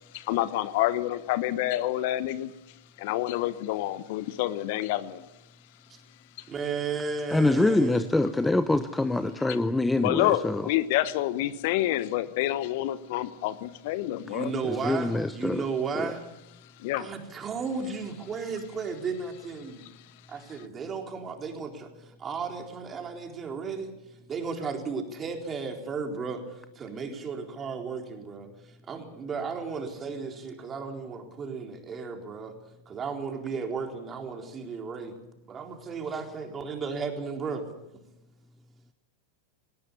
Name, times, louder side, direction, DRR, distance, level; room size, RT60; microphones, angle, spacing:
voice 1, 0.1-2.5 3.0-5.2 9.4-9.5 10.0-14.5 16.8-17.1, left 14 dB, 55° left, 15 dB, 1.1 m, -28 dB
voice 2, 6.5-8.0 14.2-16.2 17.0-19.8 20.3-21.9 22.2-23.9 24.3-28.5 28.9-32.5 32.9-35.2 35.5-37.6, right 5 dB, 25° right, 3 dB, 4.1 m, -34 dB
voice 3, 7.3-10.7 14.7-15.7 15.9-16.1, left 2 dB, 10° left, 12 dB, 0.9 m, -25 dB
19.5 x 18.5 x 8.4 m, 0.91 s
hypercardioid pair, 95°, 0 cm